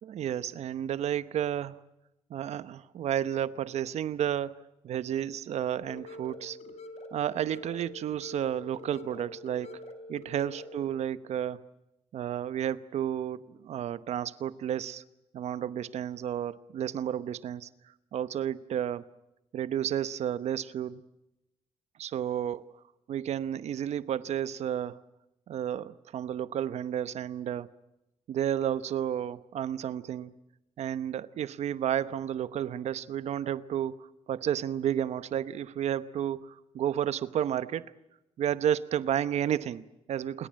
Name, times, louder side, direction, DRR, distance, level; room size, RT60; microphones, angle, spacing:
voice 1, 0.0-1.8 2.3-6.6 7.1-9.7 10.1-11.6 12.1-15.0 15.3-17.7 18.1-19.1 19.5-21.0 22.0-22.6 23.1-25.0 25.5-27.7 28.3-30.3 30.8-37.9 38.4-40.5, right 10 dB, 80° right, 0.9 m, -32 dB
sound 1, 5.8-10.8, left 1 dB, 75° left, 3.2 m, -45 dB
28.5 x 22.5 x 7.6 m
cardioid pair, 120°, 11 cm